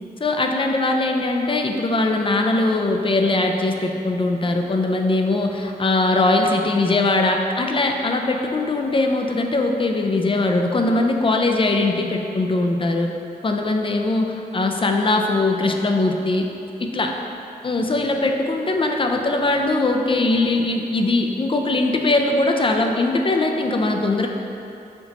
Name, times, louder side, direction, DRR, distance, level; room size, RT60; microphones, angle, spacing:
voice 1, 0.2-13.1 13.4-16.5 16.8-17.1 17.6-24.3, left 2 dB, 30° left, 3 dB, 0.4 m, -21 dB
4.3 x 2.8 x 4.0 m, 2.8 s
cardioid pair, 50°, 17 cm